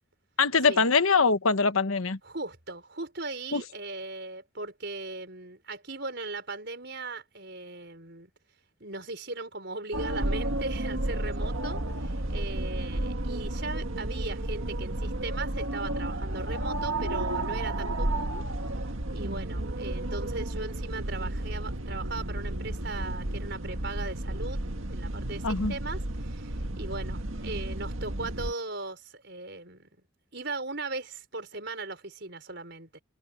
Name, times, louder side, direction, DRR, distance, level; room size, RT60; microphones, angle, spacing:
voice 1, 0.4-2.2 3.5-3.6 25.4-25.8, left 4 dB, 85° left, 1.3 m, -23 dB
voice 2, 2.2-8.3 8.8-18.4 19.1-24.6 24.9-29.9 30.3-33.0, right 3 dB, 55° right, 5.6 m, -38 dB
sound 1, 9.9-28.5, right 1 dB, 75° right, 1.8 m, -32 dB
head